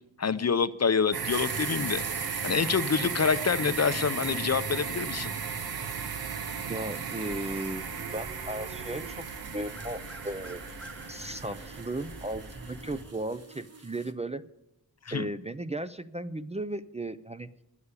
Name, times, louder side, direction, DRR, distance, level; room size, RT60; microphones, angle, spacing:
voice 1, 0.2-2.0 2.4-5.3 15.1-15.3, left 5 dB, 45° left, 14 dB, 0.5 m, -27 dB
sound 1, 1.1-13.0, right 6 dB, 80° right, 0.8 m, -36 dB
sound 2, 1.3-14.1, right 3 dB, 40° right, 1.2 m, -45 dB
voice 2, 6.7-7.8 8.1-10.6 11.1-14.4 15.1-17.5, right 2 dB, 20° right, 12 dB, 0.4 m, -36 dB
sound 3, 7.3-13.1, left 1 dB, 5° left, 0.8 m, -48 dB
9.7 x 8.2 x 9.6 m, 0.91 s
wide cardioid pair, 60°, 37 cm